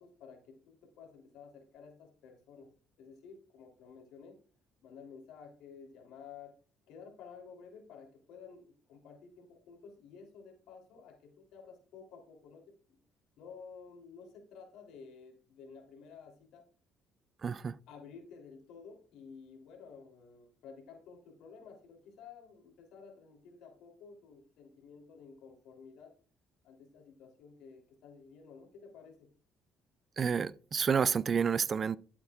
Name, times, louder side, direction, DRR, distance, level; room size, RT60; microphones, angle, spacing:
voice 1, 0.0-2.7 3.0-4.4 4.8-6.5 6.9-12.6 12.9-13.0 13.4-16.6 17.9-26.1 26.6-29.3, left 5 dB, 80° left, 3.1 m, -53 dB
voice 2, 17.4-17.8 30.2-32.0, right 6 dB, 40° right, 0.4 m, -29 dB
11.5 x 8.4 x 2.4 m
cardioid pair, 105°, 0 cm